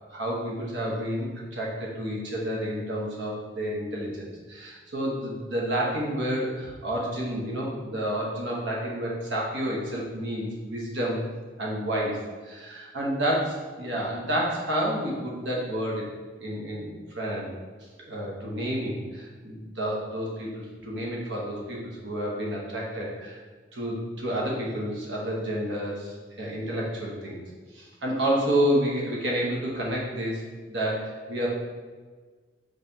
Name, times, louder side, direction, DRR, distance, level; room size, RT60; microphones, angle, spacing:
voice 1, 0.1-11.2 11.6-12.2 12.4-16.0 16.4-17.5 18.1-20.5 20.8-23.4 23.7-27.4 27.7-30.4 30.7-31.5, equal, 80° right, -3 dB, 1.1 m, -29 dB
5.5 x 3.3 x 2.8 m, 1.4 s
head